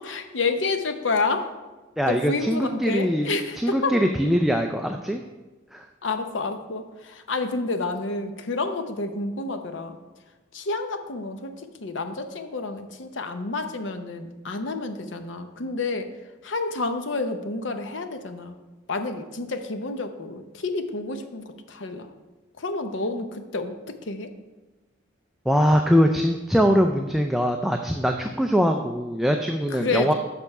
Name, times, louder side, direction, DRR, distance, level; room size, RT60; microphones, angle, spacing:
voice 1, 0.0-1.5 2.1-3.9 6.0-10.0 10.5-11.5 11.8-16.1 16.4-18.5 18.9-22.1 22.6-24.3 29.7-30.1, left 3 dB, 70° left, 7 dB, 0.7 m, -29 dB
voice 2, 2.0-5.2 5.7-5.8 25.5-30.1, equal, ahead, 4 dB, 0.3 m, -22 dB
6.8 x 5.9 x 5.4 m, 1.2 s
head